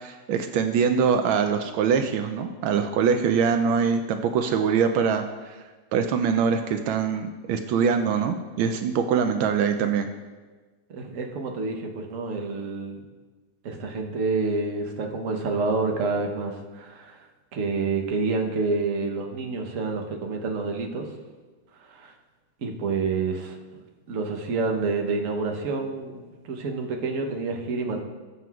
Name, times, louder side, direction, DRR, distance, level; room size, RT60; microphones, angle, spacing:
voice 1, 0.0-5.6 5.9-10.1, right 6 dB, 80° right, 6 dB, 1.3 m, -23 dB
voice 2, 10.9-13.1 13.6-17.2 17.5-21.1 21.9-22.1 22.6-23.6 24.1-28.0, right 4 dB, 50° right, 3 dB, 1.0 m, -28 dB
17.0 x 7.5 x 2.4 m, 1.3 s
omnidirectional pair, 2.2 m